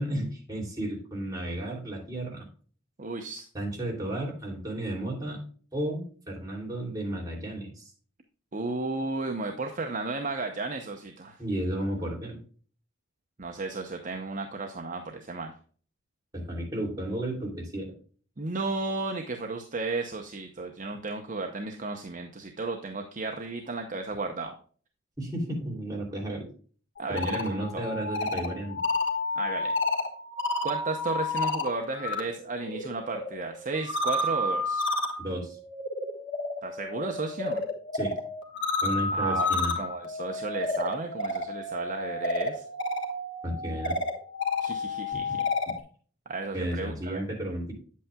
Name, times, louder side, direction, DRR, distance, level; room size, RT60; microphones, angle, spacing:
voice 1, 0.0-2.5 3.5-5.4 5.7-7.9 11.4-12.4 16.3-17.9 25.2-26.5 27.1-28.8 35.2-35.6 37.9-38.1 38.8-39.7 43.4-44.0 46.5-47.7, right 1 dB, 20° right, -3 dB, 2.8 m, -33 dB
voice 2, 3.0-3.4 8.5-11.4 13.4-15.5 18.4-24.5 27.0-27.9 29.4-29.7 30.6-34.9 36.6-37.6 39.1-42.6 44.6-45.5 46.3-47.2, right 3 dB, 40° right, 3 dB, 0.8 m, -34 dB
sound 1, 27.0-32.2 32.5-45.8, left 2 dB, 60° left, 1.4 m, -31 dB
8.9 x 8.4 x 2.3 m, 0.43 s
head